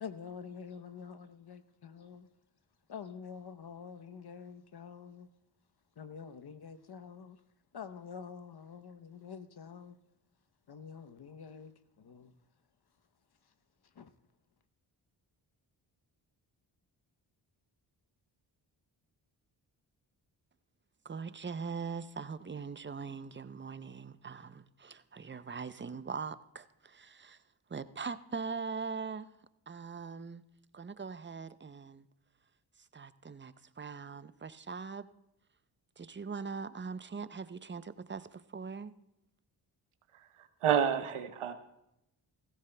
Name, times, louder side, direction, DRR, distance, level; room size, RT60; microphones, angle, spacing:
voice 1, 0.0-2.3 2.9-5.3 6.0-7.4 7.7-9.9 10.7-12.3 14.0-14.1, left 6 dB, 50° left, 0.9 m, -47 dB
voice 2, 21.0-27.4 27.7-29.3 29.7-30.4 30.7-32.0 32.9-35.1 36.0-38.9, right 5 dB, 25° right, 0.6 m, -41 dB
voice 3, 40.6-41.5, right 8 dB, 80° right, 1.0 m, -28 dB
16.5 x 14.5 x 2.2 m
supercardioid pair, 45°, 49 cm